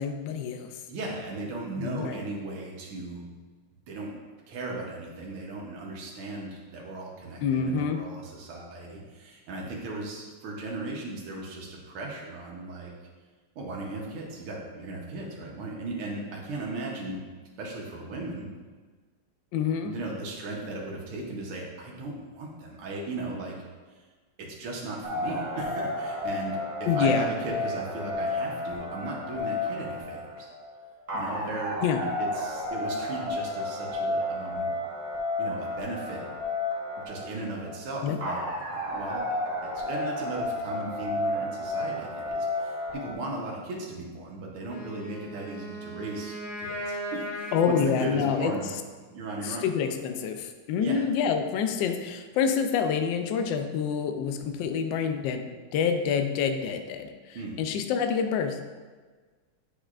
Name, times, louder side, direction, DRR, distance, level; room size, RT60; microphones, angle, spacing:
voice 1, 0.0-0.7 1.8-2.2 7.4-8.0 19.5-19.9 26.9-27.3 31.8-32.0 38.0-38.2 47.5-48.5 49.4-58.6, left 6 dB, 75° left, 7 dB, 1.2 m, -27 dB
voice 2, 0.9-3.2 3.9-4.2 4.5-12.9 13.6-17.2 17.6-18.5 19.8-23.6 23.9-24.0 24.4-30.5 31.1-31.8 32.2-34.7 35.4-36.2 37.1-38.4 38.9-39.3 39.6-48.7 49.1-49.6 50.8-51.1 57.3-57.5, right 2 dB, 85° right, -3 dB, 1.8 m, -37 dB
sound 1, 25.0-43.1, left 1 dB, 25° right, 0.6 m, -32 dB
Wind instrument woodwind instrument, 44.6-48.8, right 1 dB, 15° left, 1.3 m, -38 dB
8.3 x 5.6 x 2.4 m, 1.4 s
omnidirectional pair, 2.3 m